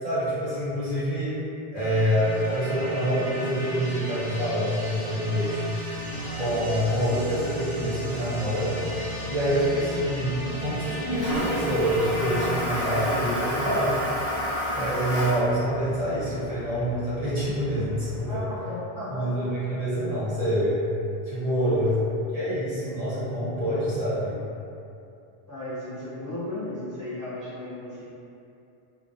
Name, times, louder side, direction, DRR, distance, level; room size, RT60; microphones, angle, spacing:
voice 1, 0.0-1.4 1.7-5.7 6.4-8.8 9.3-14.0 14.7-18.4 19.1-20.7 21.3-22.0 22.3-24.4, equal, 40° right, -11 dB, 0.7 m, -26 dB
sound 1, 1.8-15.5, right 1 dB, 80° left, 1.0 m, -35 dB
Toilet flush, 6.0-18.2, equal, 45° left, 0.8 m, -33 dB
voice 2, 18.3-19.5 21.6-21.9 25.5-28.1, left 1 dB, 30° left, -13 dB, 0.4 m, -35 dB
2.3 x 2.1 x 2.6 m, 2.7 s
omnidirectional pair, 1.1 m